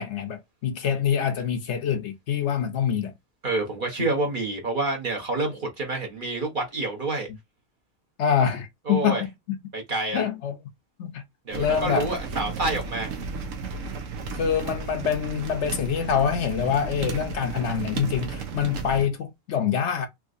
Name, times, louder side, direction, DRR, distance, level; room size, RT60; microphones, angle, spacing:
voice 1, 0.0-3.1 8.2-9.6 10.1-10.5 11.0-11.2 11.6-12.1 14.3-20.1, left 8 dB, 70° left, 0.9 m, -25 dB
voice 2, 3.4-7.3 8.9-9.2 9.7-10.2 11.5-13.1, right 2 dB, 45° right, 1.0 m, -28 dB
sound 1, 11.5-19.1, right 4 dB, 85° right, 1.1 m, -34 dB
3.5 x 3.0 x 2.5 m
omnidirectional pair, 1.3 m